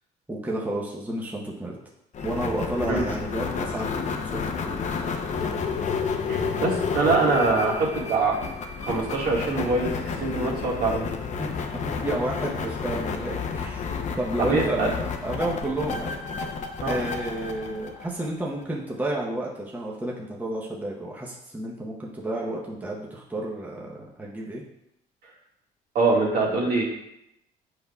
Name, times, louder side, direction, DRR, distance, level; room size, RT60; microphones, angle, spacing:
voice 1, 0.3-1.8 2.2-5.2 11.8-13.9 14.2-14.9 15.2-16.2 16.9-24.6, right 1 dB, 10° right, -3 dB, 0.9 m, -31 dB
sound 1, 2.1-18.6, left 5 dB, 45° left, 0.7 m, -31 dB
voice 2, 6.3-11.1 14.4-14.9 16.8-17.0 26.0-26.8, right 3 dB, 60° right, -3 dB, 1.8 m, -24 dB
7.8 x 5.2 x 2.3 m, 0.82 s
cardioid pair, 110°, 17 cm